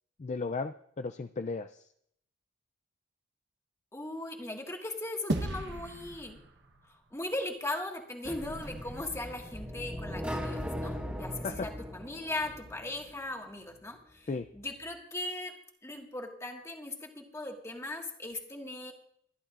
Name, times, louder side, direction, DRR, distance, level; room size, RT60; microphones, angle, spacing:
voice 1, 0.2-1.9 11.4-11.7 14.3-14.5, left 4 dB, 35° left, 8 dB, 0.4 m, -35 dB
voice 2, 3.9-6.4 6.9-14.3 14.5-18.9, left 2 dB, 15° left, 1 dB, 1.7 m, -38 dB
sound 1, 5.3-7.9, right 1 dB, 60° right, 1.1 m, -37 dB
sound 2, 8.3-13.2, equal, 5° right, 1.7 m, -39 dB
23.5 x 11.0 x 2.5 m, 0.69 s
head